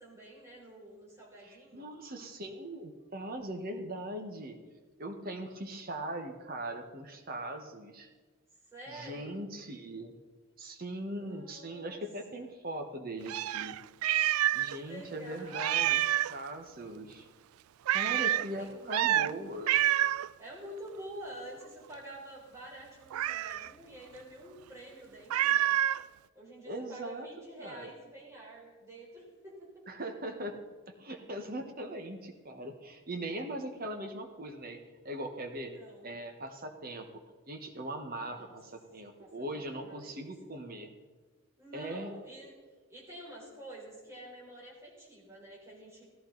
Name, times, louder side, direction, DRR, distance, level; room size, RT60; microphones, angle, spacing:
voice 1, 0.0-1.9 8.7-9.5 11.1-12.0 12.3-12.5 14.6-15.9 18.0-19.7 20.4-25.7 26.3-29.7 35.6-36.1 38.3-38.5 39.2-40.3 41.6-42.5 42.9-46.1, right 1 dB, 15° right, -5 dB, 4.0 m, -48 dB
voice 2, 1.4-4.6 5.0-8.1 8.9-10.1 10.6-13.8 14.5-17.3 17.9-19.8 26.6-27.3 27.6-27.9 29.9-30.6 30.9-34.8 35.0-35.7 36.0-37.2 37.5-40.9 41.7-42.1, right 1 dB, 40° right, 5 dB, 1.2 m, -40 dB
Meow, 13.3-14.8 15.0-15.1 15.5-16.4 17.9-18.5 18.9-19.3 19.7-20.3 23.1-23.7 25.3-26.0, right 12 dB, 90° right, 0.3 m, -28 dB
16.5 x 14.5 x 3.9 m, 1.4 s
head